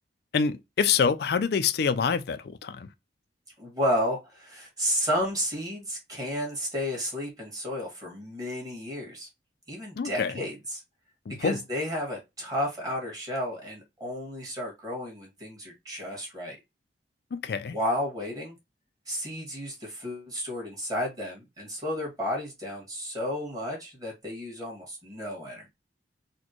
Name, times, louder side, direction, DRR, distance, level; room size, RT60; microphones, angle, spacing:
voice 1, 0.3-2.9 10.0-10.4 11.3-11.6 17.3-17.8, left 6 dB, 60° left, 0.4 m, -26 dB
voice 2, 3.6-9.3 9.7-10.8 11.4-16.6 17.6-18.6 19.1-25.7, equal, 20° right, 1.7 m, -32 dB
4.1 x 2.2 x 3.0 m
head